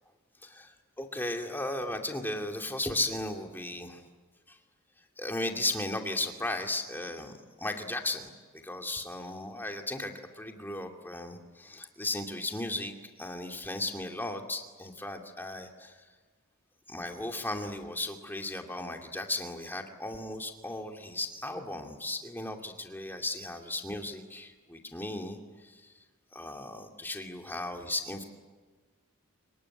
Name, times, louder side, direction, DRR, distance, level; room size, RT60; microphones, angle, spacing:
voice 1, 0.4-4.0 4.5-4.6 5.2-16.0 16.9-25.9 26.3-28.2, left 2 dB, 10° left, 3 dB, 2.4 m, -36 dB
26.0 x 23.0 x 9.8 m, 1.4 s
head